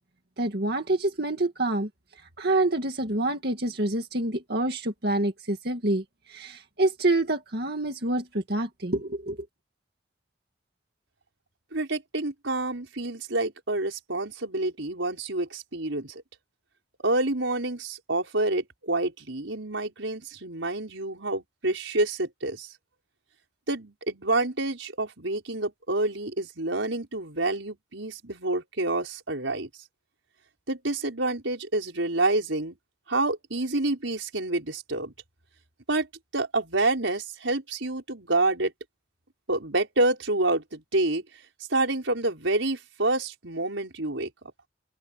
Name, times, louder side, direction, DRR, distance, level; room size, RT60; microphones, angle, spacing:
voice 1, 0.4-1.9 2.4-9.4, right 2 dB, 55° right, 2.2 m, -27 dB
voice 2, 11.7-16.2 17.0-22.7 23.7-29.7 30.7-32.8 33.1-35.1 35.9-36.1 36.3-38.7 39.5-41.2 41.7-44.3, right 2 dB, 90° right, 5.2 m, -28 dB
head